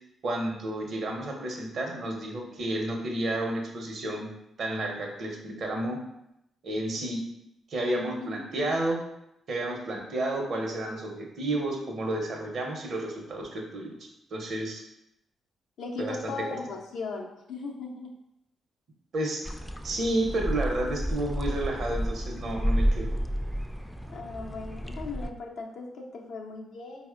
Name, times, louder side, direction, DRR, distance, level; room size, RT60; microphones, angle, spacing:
voice 1, 0.2-4.3 4.6-6.0 6.6-7.2 7.7-9.0 9.5-14.0 14.3-14.8 16.0-16.6 19.1-19.5 19.8-23.2, right 1 dB, 65° right, 1 dB, 0.6 m, -31 dB
voice 2, 7.9-8.7 15.8-18.2 24.1-27.1, left 3 dB, 75° left, 0 dB, 0.5 m, -38 dB
sound 1, 19.4-25.3, equal, ahead, 0.3 m, -31 dB
4.2 x 2.0 x 2.4 m, 0.83 s
supercardioid pair, 50°, 0 cm